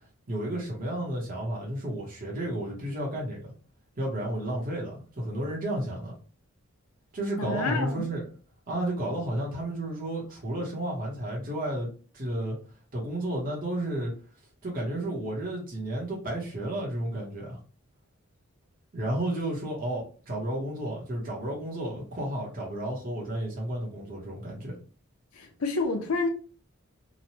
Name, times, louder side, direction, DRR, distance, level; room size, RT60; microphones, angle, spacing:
voice 1, 0.3-3.5 4.0-6.1 7.1-8.3 8.7-11.9 12.1-12.6 12.9-14.1 14.6-17.6 18.9-24.8, right 1 dB, 40° right, 0.9 m, -32 dB
voice 2, 7.4-8.0 25.4-26.3, left 3 dB, 85° left, 0.7 m, -29 dB
3.0 x 2.2 x 2.7 m
head